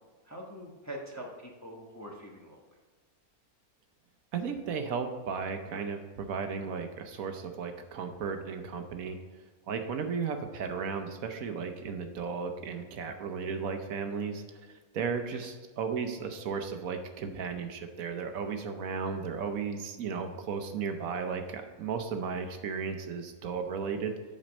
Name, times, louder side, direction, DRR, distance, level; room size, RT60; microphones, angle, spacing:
voice 1, 0.2-2.6 10.1-10.3 15.3-15.4, equal, 15° left, -2 dB, 0.9 m, -44 dB
voice 2, 4.3-9.2 9.7-14.4 14.7-24.1, right 5 dB, 70° right, 6 dB, 1.1 m, -35 dB
7.4 x 5.1 x 5.2 m, 1.3 s
omnidirectional pair, 1.5 m